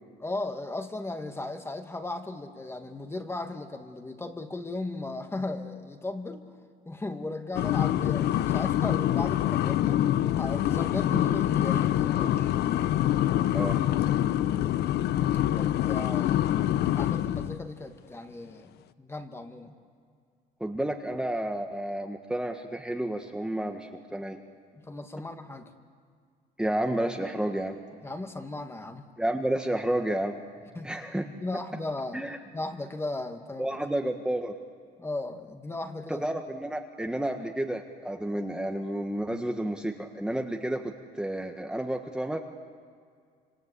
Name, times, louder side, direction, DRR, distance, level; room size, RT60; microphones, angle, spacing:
voice 1, 0.2-6.5 6.9-10.0 10.4-12.5 15.5-18.7 19.0-19.7 24.7-25.7 28.0-29.1 30.8-30.9 31.3-33.7 35.0-36.2, left 2 dB, 15° left, 6 dB, 2.1 m, -36 dB
sound 1, 7.5-17.6, left 12 dB, 75° left, 0.9 m, -25 dB
voice 2, 20.6-24.4 26.6-27.8 29.2-30.4 30.8-31.2 32.1-32.4 33.6-34.5 36.1-42.4, right 1 dB, 5° right, 3 dB, 1.6 m, -31 dB
26.5 x 26.0 x 8.5 m, 2.2 s
cardioid pair, 110°, 17 cm